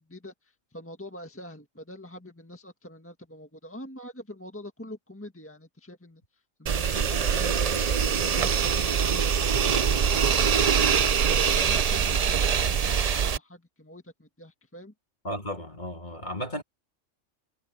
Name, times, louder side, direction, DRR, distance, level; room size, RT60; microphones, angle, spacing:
voice 1, 0.0-10.8 11.2-14.9, left 1 dB, 10° left, 1.6 m, -44 dB
sound 1, 6.7-13.4, right 7 dB, 50° right, 0.5 m, -23 dB
sound 2, 6.9-13.2, right 2 dB, 30° right, 2.7 m, -43 dB
voice 2, 15.2-16.6, equal, 35° left, 3.2 m, -34 dB
omnidirectional pair, 1.3 m